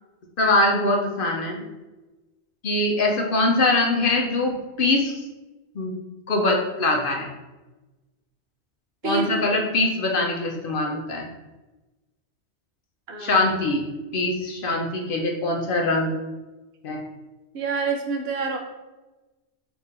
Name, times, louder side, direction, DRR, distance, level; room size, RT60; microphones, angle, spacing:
voice 1, 0.4-1.6 2.6-5.2 5.8-5.9 6.3-7.3 9.0-11.3 13.2-13.8 14.1-16.1 16.8-17.0, left 2 dB, 60° left, 1 dB, 0.7 m, -23 dB
voice 2, 9.0-9.6 13.1-13.4 17.5-18.6, right 4 dB, 65° right, 3 dB, 0.8 m, -28 dB
3.7 x 2.9 x 4.1 m, 1.1 s
omnidirectional pair, 1.2 m